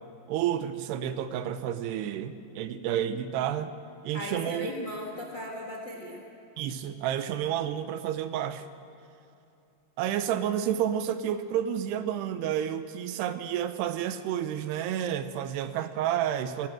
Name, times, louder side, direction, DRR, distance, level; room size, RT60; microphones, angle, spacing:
voice 1, 0.3-3.7 4.0-4.7 6.6-8.7 10.0-16.7, right 10 dB, 80° right, 11 dB, 2.8 m, -30 dB
voice 2, 4.1-6.2, left 1 dB, 50° left, 0 dB, 1.3 m, -37 dB
21.0 x 17.0 x 7.6 m, 2.7 s
omnidirectional pair, 4.9 m